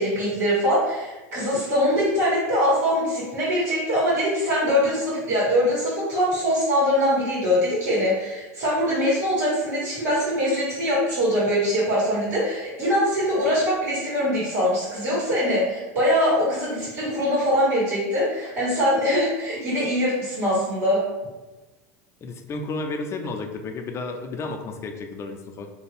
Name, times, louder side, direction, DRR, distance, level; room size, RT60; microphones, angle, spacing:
voice 1, 0.0-21.0, equal, 75° right, -8 dB, 1.4 m, -23 dB
voice 2, 22.2-25.7, left 3 dB, 30° left, 4 dB, 0.4 m, -32 dB
2.7 x 2.3 x 3.2 m, 1.1 s
hypercardioid pair, 95°, 9 cm